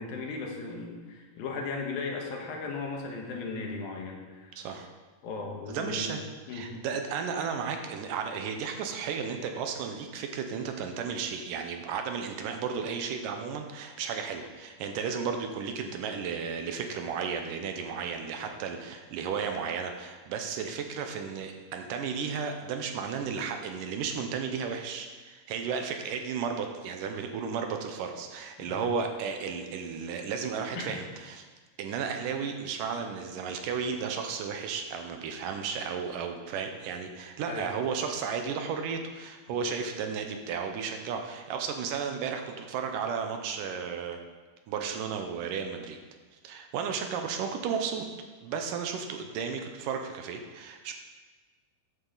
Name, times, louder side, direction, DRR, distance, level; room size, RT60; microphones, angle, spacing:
voice 1, 0.0-4.6 5.2-6.2 6.5-6.7 28.6-28.8 30.7-30.9 37.5-37.7 39.5-39.6, left 4 dB, 80° left, 1 dB, 3.2 m, -37 dB
voice 2, 4.6-4.9 5.7-6.2 6.5-31.5 31.8-44.2 44.7-46.0 46.4-48.1 48.4-50.9, right 6 dB, 75° right, 5 dB, 2.3 m, -34 dB
13.0 x 8.5 x 3.9 m, 1.4 s
omnidirectional pair, 4.1 m